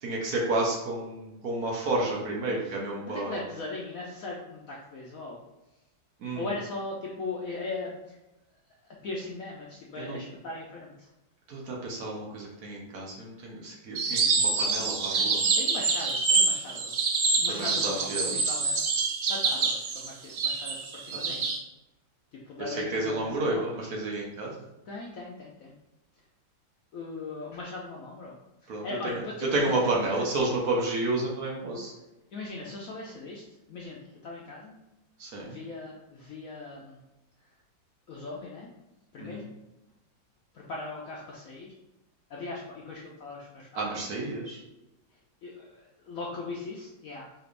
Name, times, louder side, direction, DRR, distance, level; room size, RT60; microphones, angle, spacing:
voice 1, 0.0-3.4 6.2-6.5 10.0-10.2 11.5-15.4 17.5-18.4 22.6-24.5 28.7-29.2 29.5-31.9 35.2-35.6 39.2-39.4 43.7-44.6, right 2 dB, 60° right, -2 dB, 1.2 m, -31 dB
voice 2, 3.1-5.4 6.4-8.2 9.0-11.1 15.1-15.2 15.5-16.9 17.4-19.0 19.3-21.6 22.3-23.9 24.4-24.6 24.9-25.8 26.9-28.4 28.6-30.2 32.3-33.4 33.7-34.8 35.4-37.0 38.1-38.7 39.1-39.4 40.5-41.7 42.3-44.1 45.4-47.3, left 3 dB, 70° left, -3 dB, 0.8 m, -39 dB
sound 1, 13.9-21.6, right 4 dB, 85° right, 0.6 m, -26 dB
4.9 x 3.3 x 2.5 m, 0.98 s
omnidirectional pair, 2.0 m